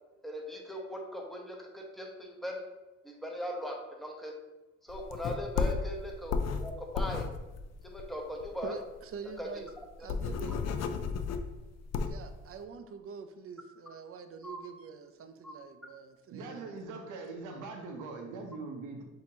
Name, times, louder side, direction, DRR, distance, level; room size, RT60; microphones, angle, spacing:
voice 1, 0.2-2.6 3.0-4.4 4.8-7.3 7.8-8.8 9.4-9.7 10.0-10.1 10.5-10.6 14.4-14.6 15.4-15.5, left 1 dB, ahead, 0.9 m, -39 dB
sound 1, 4.9-8.6 9.0-9.1 9.3-9.4 9.8-12.3, left 5 dB, 60° left, 0.5 m, -33 dB
voice 2, 8.6-9.7 10.0-10.6 12.1-16.8, right 6 dB, 50° right, 0.5 m, -45 dB
voice 3, 16.3-19.0, right 3 dB, 85° right, 0.8 m, -41 dB
6.2 x 2.8 x 2.8 m
cardioid pair, 90°, 30 cm